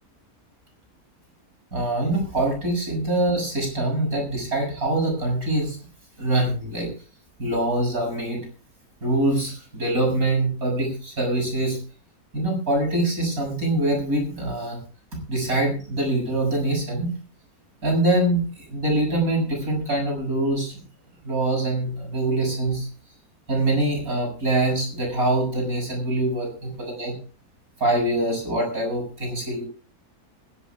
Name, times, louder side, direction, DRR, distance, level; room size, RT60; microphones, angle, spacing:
voice 1, 1.7-5.8 6.2-6.9 7.4-8.5 9.0-11.8 12.3-14.8 15.3-17.1 17.8-20.7 21.2-22.9 23.5-27.1 27.8-29.7, right 1 dB, 65° right, 1 dB, 7.7 m, -24 dB
22.0 x 16.5 x 2.4 m, 0.37 s
omnidirectional pair, 1.6 m